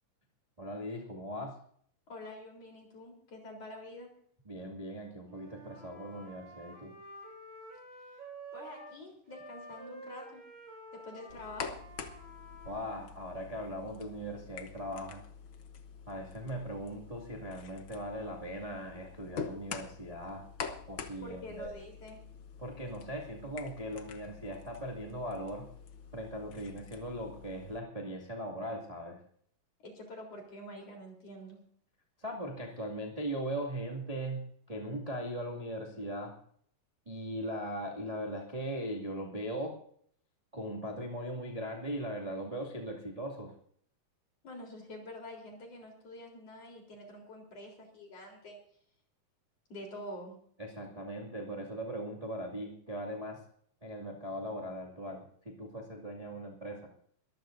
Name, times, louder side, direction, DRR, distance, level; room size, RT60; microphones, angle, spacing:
voice 1, 0.6-1.6 4.5-6.9 12.6-15.2 16.1-20.4 20.9-21.7 22.6-25.7 26.1-29.2 32.2-34.4 34.7-36.3 37.1-39.8 40.5-43.5 50.6-53.4 53.8-56.9, equal, 15° right, -1 dB, 1.8 m, -39 dB
voice 2, 2.1-4.1 8.5-10.4 10.9-11.7 21.2-22.2 29.8-31.6 44.4-48.6 49.7-50.4, left 1 dB, 45° left, 1 dB, 4.7 m, -47 dB
Wind instrument woodwind instrument, 5.2-9.0 9.3-13.1, right 1 dB, 70° right, 4.9 m, -50 dB
sound 1, 11.3-27.8, left 6 dB, 85° left, 1.1 m, -46 dB
23.0 x 14.5 x 2.7 m, 0.62 s
omnidirectional pair, 3.9 m